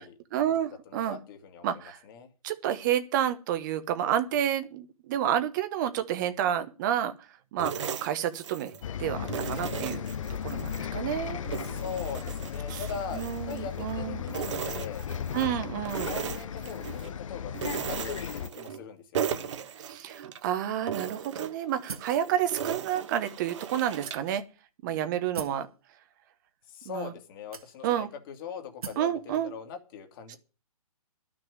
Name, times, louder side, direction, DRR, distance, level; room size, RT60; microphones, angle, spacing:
voice 1, 0.3-1.2 1.6-2.0 2.4-8.7 9.0-10.0 10.3-11.4 12.7-12.8 13.1-14.2 15.3-16.1 19.8-24.4 24.8-25.7 26.9-27.1 27.8-28.1 29.0-29.5 30.3-30.4, right 10 dB, 30° right, 9 dB, 1.0 m, -30 dB
voice 2, 0.9-1.7 2.0-2.3 11.6-15.0 16.1-19.5 26.7-30.4, left 6 dB, 35° left, 6 dB, 2.4 m, -41 dB
sound 1, 7.6-8.9 9.3-10.9 11.3-14.0 14.3-15.5 15.9-17.1 17.5-18.9 19.1-20.5 20.9-24.3, right 8 dB, 50° right, 1.4 m, -37 dB
Bus, 8.8-18.5, left 8 dB, 60° left, 0.6 m, -36 dB
sound 2, 21.9-22.2 23.0-23.1 24.0-24.6 25.3-25.7 26.6-26.7 27.5-28.1 28.8-29.1, right 6 dB, 70° right, 1.9 m, -41 dB
11.5 x 6.2 x 9.4 m, 0.36 s
hypercardioid pair, 145°, 19 cm